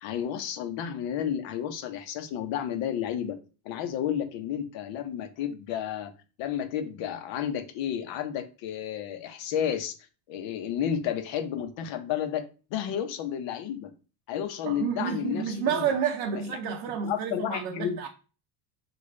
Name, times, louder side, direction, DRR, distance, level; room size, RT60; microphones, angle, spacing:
voice 1, 0.0-3.4 3.6-6.1 6.4-9.9 10.3-12.4 12.7-13.9 14.3-16.0 16.3-16.6 17.0-18.0, left 9 dB, 60° left, 0.9 m, -31 dB
voice 2, 14.6-18.1, right 7 dB, 55° right, 0.7 m, -30 dB
3.8 x 2.5 x 3.2 m
cardioid pair, 120°, 49 cm